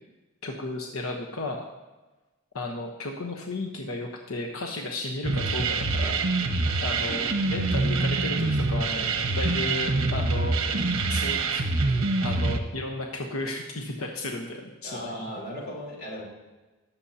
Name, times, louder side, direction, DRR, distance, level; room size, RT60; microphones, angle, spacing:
voice 1, 0.4-1.6 2.5-6.2 6.8-10.5 11.1-11.7 12.2-15.3, left 2 dB, 90° left, 0 dB, 1.1 m, -34 dB
sound 1, 5.2-12.6, right 3 dB, 75° right, 1.1 m, -25 dB
voice 2, 14.8-16.2, equal, 45° left, -4 dB, 3.7 m, -36 dB
21.0 x 7.2 x 2.8 m, 1.2 s
head